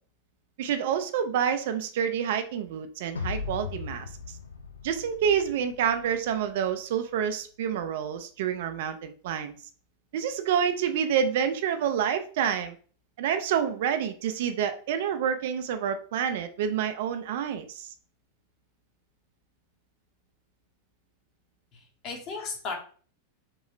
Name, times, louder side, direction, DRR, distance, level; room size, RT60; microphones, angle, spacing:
voice 1, 0.6-4.1 4.8-9.5 10.1-12.8 13.2-17.9, right 8 dB, 55° right, 8 dB, 0.3 m, -28 dB
sound 1, 3.2-6.4, left 5 dB, 75° left, 0.4 m, -38 dB
voice 2, 21.7-22.7, left 4 dB, 35° left, 1 dB, 0.9 m, -36 dB
3.0 x 2.3 x 2.9 m, 0.42 s
figure-of-eight pair, 90°, 0 cm